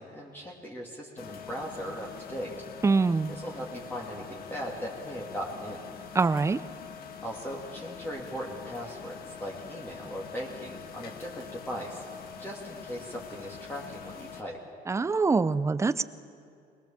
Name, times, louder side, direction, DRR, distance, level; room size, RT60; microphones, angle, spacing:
voice 1, 0.0-2.6 3.3-5.9 7.2-12.0 12.4-14.6, equal, 10° left, -3 dB, 2.6 m, -38 dB
sound 1, 1.2-14.4, left 7 dB, 65° left, 1.7 m, -44 dB
voice 2, 2.8-3.4 6.1-6.6 14.9-16.0, right 4 dB, 15° right, 14 dB, 0.6 m, -24 dB
21.0 x 20.5 x 7.2 m, 2.5 s
cardioid pair, 110°, 17 cm